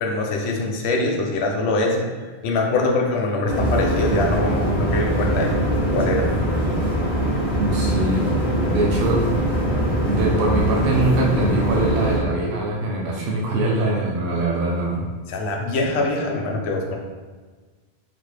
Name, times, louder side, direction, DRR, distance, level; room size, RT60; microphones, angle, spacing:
voice 1, 0.0-5.5 5.9-6.3 8.8-8.9 15.3-17.0, left 2 dB, 80° left, 1 dB, 0.8 m, -23 dB
sound 1, 3.4-12.2, right 1 dB, 80° right, 1.7 m, -22 dB
voice 2, 7.6-8.4 8.6-9.3 10.0-15.1, right 2 dB, 65° right, -2 dB, 0.7 m, -23 dB
3.9 x 2.1 x 3.2 m, 1.4 s
omnidirectional pair, 1.1 m